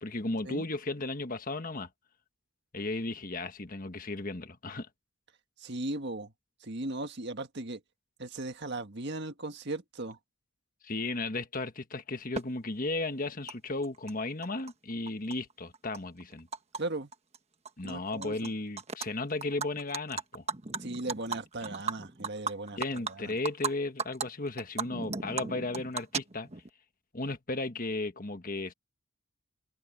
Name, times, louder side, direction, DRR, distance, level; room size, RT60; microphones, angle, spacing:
voice 1, 0.0-1.9 2.7-4.9 10.8-16.5 17.8-20.4 22.8-26.5 27.1-28.7, left 2 dB, 40° left, 1.4 m, -35 dB
voice 2, 5.6-6.3 6.6-7.8 8.2-10.2 16.7-17.1 17.8-18.5 20.8-23.4, right 2 dB, 55° right, 1.8 m, -37 dB
Animal, 12.4-12.5 13.5-13.6 13.8-14.7 15.1-16.8 17.1-17.4 17.7-18.5 18.8-19.1 19.4-23.7 24.0-24.3 24.6-26.7, right 5 dB, 30° right, 1.2 m, -36 dB
open air
head